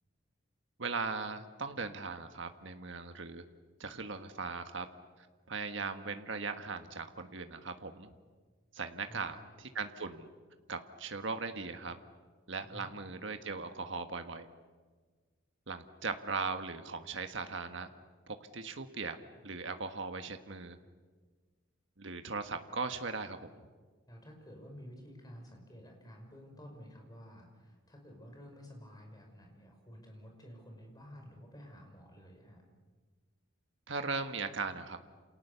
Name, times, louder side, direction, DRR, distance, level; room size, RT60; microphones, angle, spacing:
voice 1, 0.8-3.4 3.8-4.9 5.2-8.1 8.7-10.3 10.7-12.0 12.5-14.5 15.7-17.9 18.3-19.2 19.4-20.8 22.0-23.5 33.9-35.0, right 4 dB, 65° right, 7 dB, 1.5 m, -39 dB
voice 2, 9.1-9.4 12.6-12.9 24.1-32.6, equal, 20° left, 2 dB, 5.5 m, -52 dB
28.5 x 28.0 x 7.0 m, 1.4 s
head